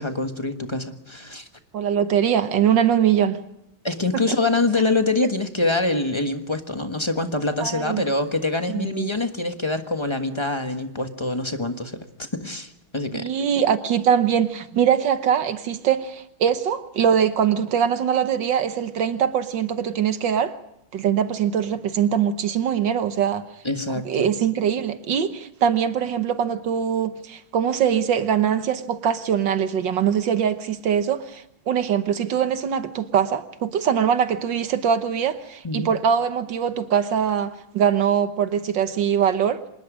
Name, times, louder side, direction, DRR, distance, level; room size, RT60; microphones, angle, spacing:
voice 1, 0.0-1.5 3.8-13.3 23.6-24.3 35.6-35.9, left 2 dB, 15° left, 1.2 m, -25 dB
voice 2, 1.7-3.4 4.1-4.4 7.6-8.0 8.7-9.1 13.1-20.5 20.9-23.4 24.0-39.6, right 8 dB, 70° right, 1.7 m, -22 dB
26.0 x 20.0 x 5.0 m
omnidirectional pair, 2.2 m